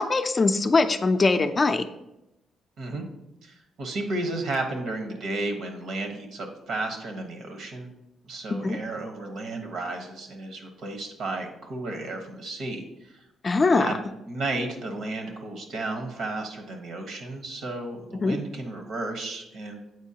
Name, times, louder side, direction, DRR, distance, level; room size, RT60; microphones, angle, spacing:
voice 1, 0.0-1.8 8.5-8.8 13.4-14.0 18.2-18.4, left 3 dB, 30° left, 8 dB, 0.4 m, -22 dB
voice 2, 3.4-7.9 8.2-13.1 13.8-13.9 14.3-19.9, right 2 dB, 70° right, 4 dB, 1.1 m, -33 dB
8.1 x 4.5 x 2.8 m, 0.89 s
cardioid pair, 90°, 0 cm